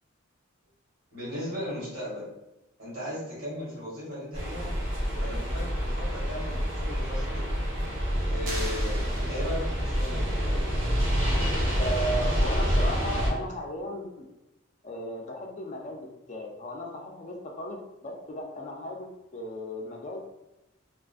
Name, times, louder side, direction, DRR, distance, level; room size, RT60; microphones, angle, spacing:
voice 1, 1.1-2.3 2.8-4.7 5.1-7.4 8.3-10.2, left 1 dB, 75° right, -7 dB, 1.5 m, -37 dB
sound 1, 4.3-13.3, equal, 60° right, 1.2 m, -27 dB
sound 2, 8.5-10.0, right 1 dB, 40° right, 0.6 m, -39 dB
voice 2, 11.6-14.3 14.8-20.2, equal, 35° left, 0 dB, 0.4 m, -36 dB
2.4 x 2.4 x 2.3 m, 0.91 s
head